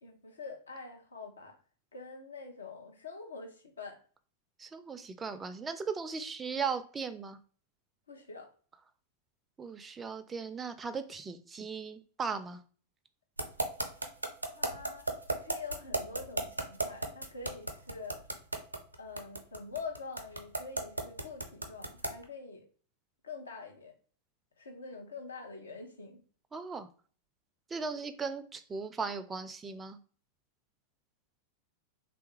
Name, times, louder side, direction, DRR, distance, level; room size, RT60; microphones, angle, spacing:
voice 1, 0.0-1.6 1.9-4.0 8.1-8.5 14.5-18.2 19.0-22.6 23.2-23.9 24.6-26.2, left 4 dB, 75° left, 0.7 m, -45 dB
voice 2, 4.6-7.4 9.6-12.6 26.5-26.9 27.7-30.0, right 5 dB, 15° right, 0.3 m, -37 dB
sound 1, 13.4-22.2, right 2 dB, 80° right, 0.4 m, -33 dB
3.2 x 2.3 x 2.9 m
figure-of-eight pair, 90°, 0 cm